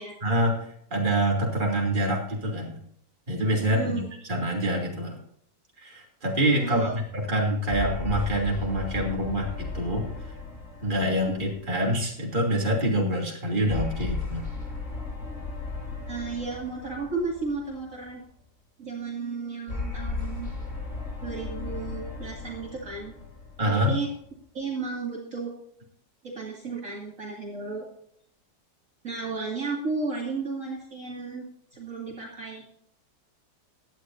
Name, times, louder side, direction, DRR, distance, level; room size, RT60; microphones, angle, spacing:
voice 1, 0.2-2.8 3.3-4.0 4.3-5.2 5.8-10.0 10.8-14.5 23.6-23.9, right 1 dB, 25° right, -1 dB, 3.0 m, -26 dB
voice 2, 3.7-4.1 6.6-7.0 16.1-18.2 18.8-20.5 21.2-23.1 23.7-24.1 24.5-25.5 26.2-27.9 29.0-31.4 31.7-32.7, right 4 dB, 45° right, -3 dB, 2.6 m, -33 dB
sound 1, 7.7-12.3 13.7-18.1 19.7-24.2, left 3 dB, 50° left, 6.6 m, -35 dB
17.0 x 11.0 x 2.7 m, 0.69 s
omnidirectional pair, 1.9 m